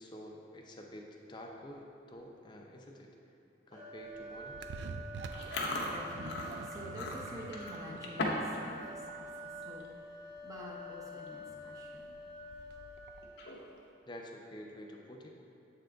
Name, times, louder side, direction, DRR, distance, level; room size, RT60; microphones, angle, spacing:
voice 1, 0.0-3.1 3.7-4.7 14.1-15.3, equal, 25° left, 1 dB, 0.5 m, -49 dB
sound 1, 3.7-13.6, equal, 40° right, 1.4 m, -48 dB
sound 2, 4.0-13.3, right 4 dB, 65° right, 0.3 m, -48 dB
Chewing mastication, 5.3-8.6 8.9-9.2 9.6-9.9 10.6-10.7 10.9-11.3 11.7-11.8 13.2-13.8, left 2 dB, 65° left, 0.7 m, -38 dB
voice 2, 5.8-12.1, equal, 20° right, -3 dB, 0.7 m, -48 dB
7.4 x 3.8 x 3.4 m, 2.6 s
head